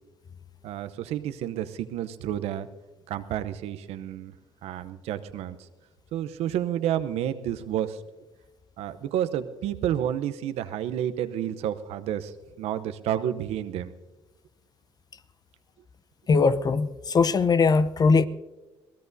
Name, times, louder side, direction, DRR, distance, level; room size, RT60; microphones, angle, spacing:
voice 1, 0.6-2.7 3.1-4.3 4.6-5.6 6.1-8.0 8.8-13.9, right 10 dB, 70° right, 0.8 m, -30 dB
voice 2, 16.3-18.3, left 4 dB, 35° left, 0.8 m, -20 dB
24.5 x 17.0 x 2.7 m
supercardioid pair, 75°, 11 cm